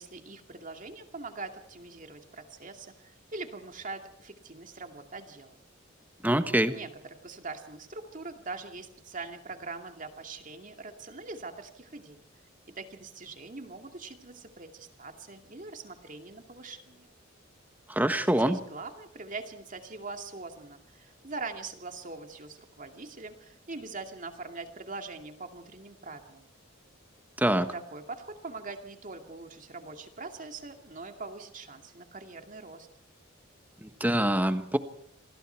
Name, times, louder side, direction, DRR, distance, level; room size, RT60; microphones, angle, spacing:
voice 1, 0.0-5.6 6.6-12.2 12.8-17.1 18.2-26.5 27.7-32.9, right 3 dB, 40° right, 5 dB, 2.3 m, -42 dB
voice 2, 6.2-6.7 17.9-18.6 27.4-27.7 33.8-34.8, right 1 dB, 10° right, 9 dB, 1.3 m, -25 dB
28.0 x 21.0 x 4.6 m, 0.63 s
head